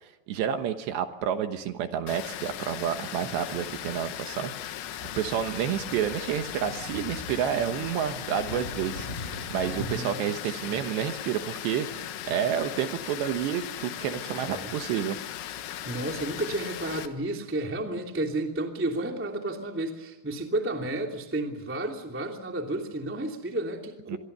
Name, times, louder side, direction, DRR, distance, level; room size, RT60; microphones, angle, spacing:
voice 1, 0.0-4.5 5.2-11.9 12.2-15.2 24.1-24.2, right 9 dB, 70° right, 8 dB, 3.1 m, -30 dB
Water, 2.1-17.1, left 11 dB, 75° left, 3.7 m, -38 dB
sound 1, 5.0-10.0, left 1 dB, 20° left, 2.0 m, -41 dB
voice 2, 9.8-10.8 14.5-14.7 15.8-24.2, right 1 dB, 5° right, 3 dB, 0.9 m, -32 dB
25.5 x 23.0 x 6.9 m, 1.0 s
omnidirectional pair, 5.8 m